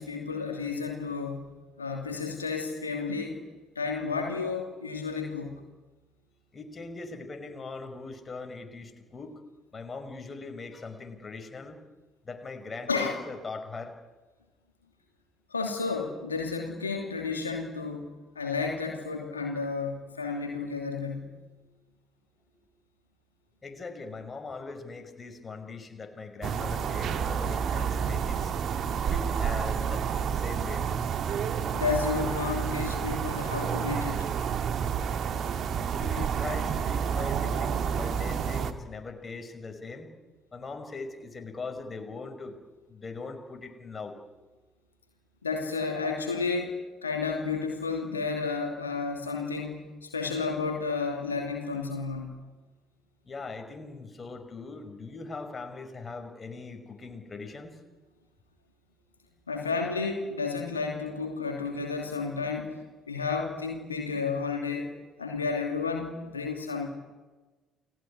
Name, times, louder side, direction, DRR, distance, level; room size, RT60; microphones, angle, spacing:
voice 1, 0.0-1.5 1.8-3.4 3.7-5.6 12.9-13.2 15.5-18.1 18.3-21.3 31.7-34.3 45.4-46.8 47.0-52.3 59.5-62.8 63.1-64.9 65.2-66.9, left 4 dB, 85° left, 2 dB, 2.8 m, -31 dB
voice 2, 6.5-9.3 9.7-11.8 12.3-13.9 23.6-28.5 29.1-30.8 35.9-40.1 40.5-42.6 42.9-44.2 53.3-57.7, left 3 dB, 30° left, 5 dB, 5.3 m, -40 dB
sound 1, 26.4-38.7, right 7 dB, 50° right, 2.0 m, -29 dB
29.5 x 19.0 x 9.8 m, 1.2 s
figure-of-eight pair, 50°, 0 cm